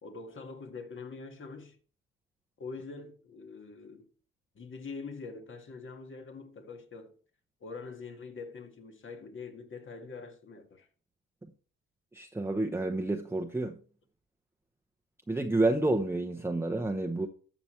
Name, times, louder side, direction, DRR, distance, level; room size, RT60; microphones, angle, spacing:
voice 1, 0.0-1.8 2.6-4.1 4.6-7.1 7.6-10.9, left 4 dB, 40° left, 2.0 m, -44 dB
voice 2, 12.1-13.7 15.3-17.3, right 2 dB, 10° right, 0.9 m, -29 dB
13.5 x 6.1 x 3.2 m
supercardioid pair, 65°, 29 cm